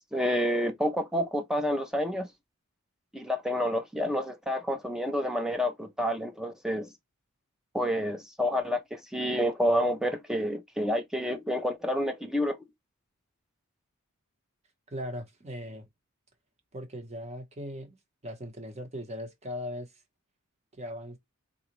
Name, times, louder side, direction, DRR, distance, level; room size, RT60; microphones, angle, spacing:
voice 1, 0.1-2.3 3.1-6.9 7.7-12.6, equal, ahead, 0.6 m, -29 dB
voice 2, 14.9-15.9 16.7-18.0 18.2-19.9 20.8-21.2, equal, 30° right, 1.0 m, -39 dB
4.0 x 2.4 x 3.0 m
head